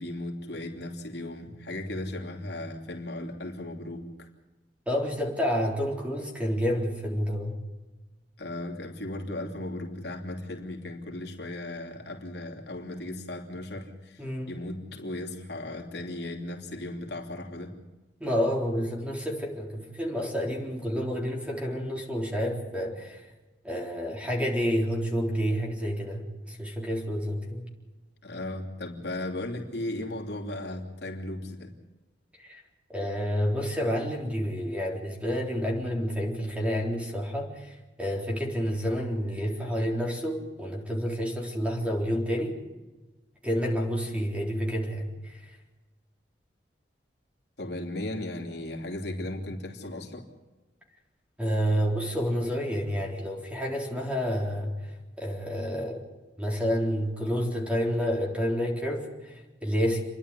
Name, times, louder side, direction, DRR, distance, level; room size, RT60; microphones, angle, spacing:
voice 1, 0.0-4.3 8.4-17.7 28.2-31.7 47.6-50.3, left 1 dB, 70° left, 3.0 m, -36 dB
voice 2, 4.9-7.5 14.2-14.5 18.2-23.2 23.6-27.6 32.4-32.6 32.9-42.6 43.4-45.6 51.4-54.7 55.2-56.0 56.4-60.0, equal, 5° right, 3.9 m, -29 dB
28.5 x 11.5 x 9.9 m
head